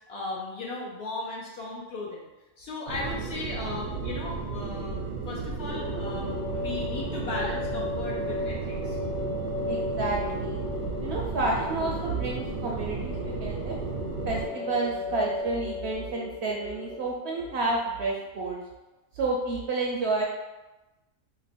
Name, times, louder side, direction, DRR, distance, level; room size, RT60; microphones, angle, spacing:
voice 1, 0.1-2.3 2.6-9.0, left 2 dB, 60° left, -4 dB, 0.8 m, -36 dB
sound 1, 2.9-14.5, right 5 dB, 90° right, 1.1 m, -34 dB
sound 2, 5.7-17.9, left 3 dB, 75° left, 1.1 m, -36 dB
voice 2, 9.7-10.6 11.0-13.8 14.3-18.6 19.1-20.2, right 3 dB, 65° right, -2 dB, 0.7 m, -30 dB
2.9 x 2.1 x 4.1 m, 1.0 s
omnidirectional pair, 1.4 m